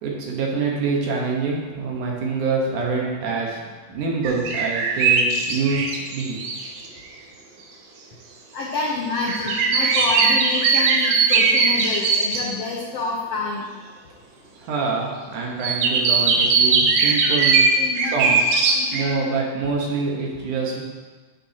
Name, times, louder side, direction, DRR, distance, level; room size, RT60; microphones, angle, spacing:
voice 1, 0.0-6.4 14.6-17.6 18.1-18.5 18.9-20.8, right 4 dB, 65° right, -2 dB, 2.5 m, -26 dB
sound 1, 4.2-6.9 9.2-12.4 15.6-19.1, right 5 dB, 90° right, 2.7 m, -19 dB
voice 2, 8.5-13.7 17.8-18.3 18.7-19.1, left 3 dB, 85° left, -2 dB, 1.3 m, -28 dB
9.6 x 8.6 x 2.9 m, 1.4 s
omnidirectional pair, 4.0 m